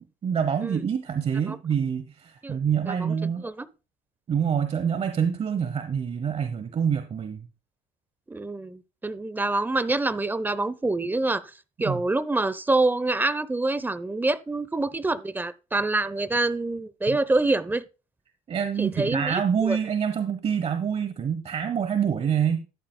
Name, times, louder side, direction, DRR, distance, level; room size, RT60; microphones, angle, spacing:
voice 1, 0.2-3.5 4.3-7.4 11.8-12.0 17.1-17.2 18.5-22.7, right 7 dB, 35° right, 1.0 m, -26 dB
voice 2, 2.9-3.7 8.3-11.4 11.8-17.8 18.8-19.8, right 2 dB, 10° right, 0.8 m, -26 dB
13.5 x 10.5 x 2.3 m
supercardioid pair, 90°, 17 cm